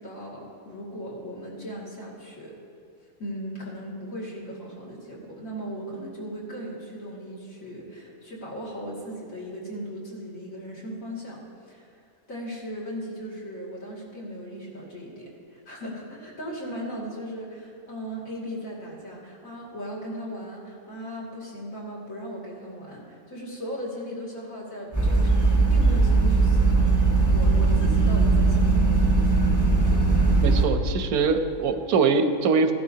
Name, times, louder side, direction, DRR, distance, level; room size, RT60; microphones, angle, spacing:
voice 1, 0.0-2.5 3.2-12.0 12.3-27.0 27.3-28.9, equal, 65° left, -5 dB, 2.8 m, -37 dB
sound 1, 24.9-30.6, right 3 dB, 15° left, 0.9 m, -19 dB
voice 2, 30.4-32.7, right 4 dB, 90° right, 7 dB, 1.2 m, -23 dB
15.5 x 12.0 x 2.8 m, 2.4 s
omnidirectional pair, 1.5 m